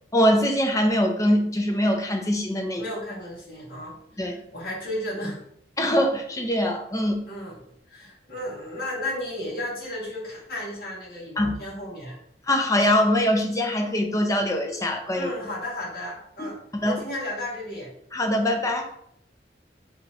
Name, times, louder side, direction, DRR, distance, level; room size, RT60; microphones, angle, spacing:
voice 1, 0.1-2.8 4.2-4.4 5.8-7.2 11.4-11.5 12.5-15.3 16.4-17.0 18.1-18.9, equal, 20° left, 4 dB, 0.5 m, -23 dB
voice 2, 2.7-5.4 7.3-7.6 7.9-12.2 15.1-16.6 16.8-17.9, left 1 dB, 55° left, -5 dB, 1.7 m, -34 dB
5.7 x 2.9 x 2.6 m, 0.70 s
head